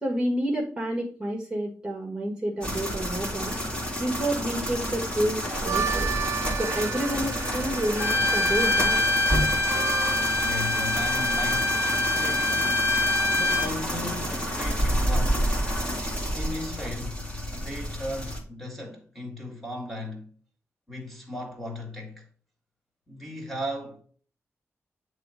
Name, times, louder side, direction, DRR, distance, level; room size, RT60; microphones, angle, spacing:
voice 1, 0.0-3.6 4.0-6.1 6.6-9.0, right 1 dB, 15° right, 1.5 m, -29 dB
sound 1, 2.6-18.4, equal, 20° left, 2.0 m, -29 dB
Harmonica, 5.4-10.3, right 7 dB, 75° right, 0.5 m, -33 dB
Bowed string instrument, 8.0-13.7, left 2 dB, 45° left, 1.6 m, -25 dB
voice 2, 10.4-12.8 13.3-15.5 16.3-17.3 17.5-20.3 20.9-22.3 23.1-24.0, left 1 dB, 5° left, 2.1 m, -36 dB
9.1 x 3.2 x 5.0 m
wide cardioid pair, 175°, 5 cm